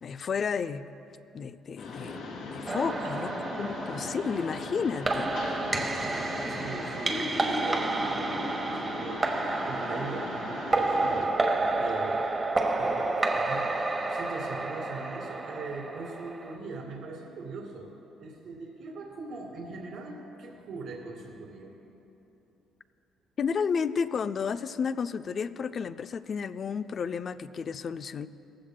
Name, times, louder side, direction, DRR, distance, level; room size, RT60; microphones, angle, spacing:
voice 1, 0.0-0.9 1.3-3.3 3.6-5.3 23.4-28.3, left 6 dB, 40° left, 13 dB, 0.4 m, -32 dB
Mechanisms, 1.8-11.3, left 3 dB, 85° left, 2.5 m, -39 dB
sound 1, 2.7-16.6, right 2 dB, 25° right, 1.2 m, -30 dB
voice 2, 3.0-3.5 6.5-11.4 11.8-12.3 12.8-17.9 18.2-21.7, right 3 dB, 65° right, -1 dB, 2.4 m, -41 dB
19.5 x 15.0 x 2.2 m, 2.9 s
cardioid pair, 120°, 0 cm